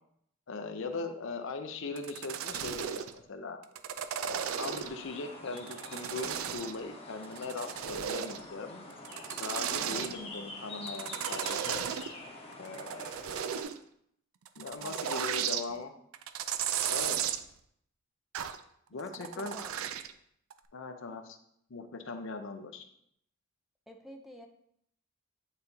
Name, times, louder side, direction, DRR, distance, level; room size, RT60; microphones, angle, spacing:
voice 1, 0.5-3.6 4.2-8.9 9.4-11.9 12.6-13.1 14.6-15.9 16.9-17.2 18.9-19.6 20.7-21.4 21.7-22.9, left 3 dB, 65° left, 6 dB, 0.6 m, -40 dB
sound 1, 2.0-3.1 3.6-5.0 5.6-6.8 7.2-8.5 8.9-10.1 10.9-12.1 12.5-13.8 14.5-15.6 16.1-17.4 18.3-18.6 19.0-20.1 20.5-20.6, right 9 dB, 75° right, 0.4 m, -35 dB
sound 2, 4.3-13.6, left 2 dB, 30° left, 0.9 m, -46 dB
voice 2, 9.8-10.1 14.8-15.2 15.7-15.8 18.9-19.7 23.9-24.5, left 1 dB, ahead, 3 dB, 0.5 m, -50 dB
8.9 x 4.1 x 2.7 m, 0.71 s
head